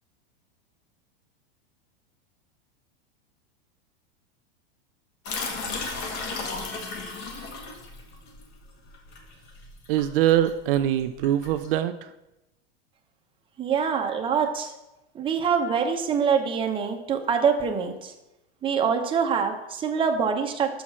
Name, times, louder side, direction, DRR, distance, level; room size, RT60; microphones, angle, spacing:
sound 1, 5.3-11.7, left 4 dB, 45° left, 1.7 m, -35 dB
voice 1, 9.9-12.1, right 12 dB, 60° right, 9 dB, 0.5 m, -23 dB
voice 2, 13.6-14.7 15.1-18.1 18.6-20.8, right 6 dB, 15° right, 4 dB, 0.8 m, -25 dB
6.1 x 5.7 x 6.1 m, 0.92 s
supercardioid pair, 145°, 31 cm